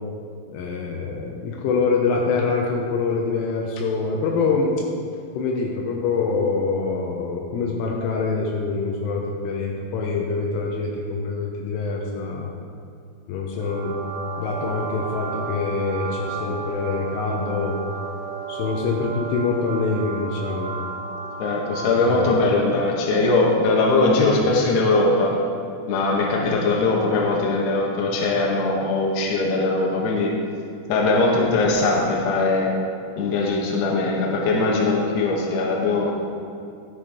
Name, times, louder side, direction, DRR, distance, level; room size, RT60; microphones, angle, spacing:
voice 1, 0.5-4.7 5.3-12.5 13.3-14.0 14.4-17.8 18.5-20.8 22.0-22.3 24.2-24.4, left 4 dB, 85° left, -1 dB, 3.4 m, -25 dB
sound 1, 13.6-22.4, right 5 dB, 80° right, 2.5 m, -33 dB
voice 2, 21.4-25.3 25.9-30.3 30.9-32.7 33.2-36.1, left 3 dB, 65° left, -2 dB, 3.3 m, -21 dB
12.5 x 8.4 x 5.0 m, 2.4 s
omnidirectional pair, 5.8 m